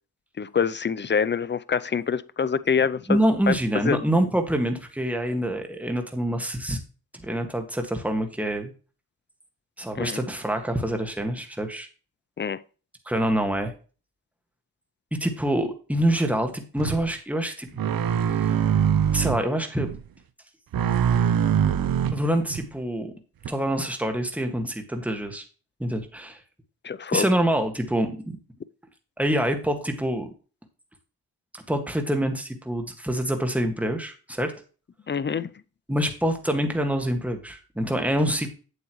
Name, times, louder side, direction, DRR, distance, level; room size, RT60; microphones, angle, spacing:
voice 1, 0.4-3.2 3.5-3.6 3.8-4.0 9.9-10.2 12.4-12.6 26.8-27.3 35.1-35.5, left 6 dB, 30° left, 0.5 m, -25 dB
voice 2, 3.1-6.8 7.1-8.7 9.8-11.9 13.1-13.7 15.2-17.7 18.3-18.6 19.1-19.9 22.1-23.1 23.5-25.4 25.8-26.4 27.1-28.4 29.2-30.3 31.5-34.5 35.9-38.5, right 1 dB, 5° right, 1.8 m, -26 dB
sound 1, 16.8-17.1 17.8-19.4 19.8-20.0 20.7-22.6 23.4-23.5, right 8 dB, 60° right, 0.7 m, -23 dB
8.2 x 8.0 x 3.1 m
cardioid pair, 70°, 39 cm